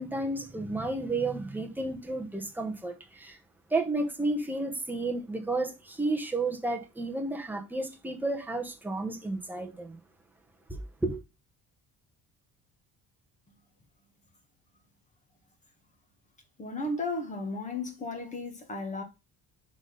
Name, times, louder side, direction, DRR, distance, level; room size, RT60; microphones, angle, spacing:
voice 1, 0.0-3.4 3.7-10.0 10.7-11.2, right 2 dB, 5° right, 0.9 m, -32 dB
voice 2, 16.6-19.0, left 2 dB, 20° left, 1.5 m, -34 dB
6.2 x 3.9 x 5.0 m
cardioid pair, 175°, 36 cm